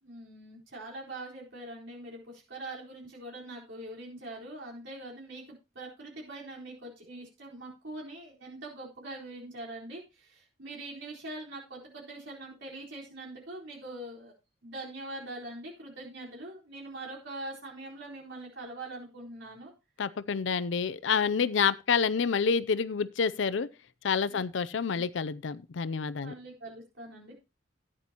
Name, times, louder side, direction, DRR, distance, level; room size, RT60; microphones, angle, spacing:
voice 1, 0.0-14.3 14.6-19.7 24.3-24.4 25.0-25.1 26.2-27.3, right 2 dB, 70° right, 4.2 m, -43 dB
voice 2, 20.0-23.7 24.0-26.3, left 6 dB, 70° left, 0.5 m, -28 dB
14.0 x 9.9 x 2.9 m
head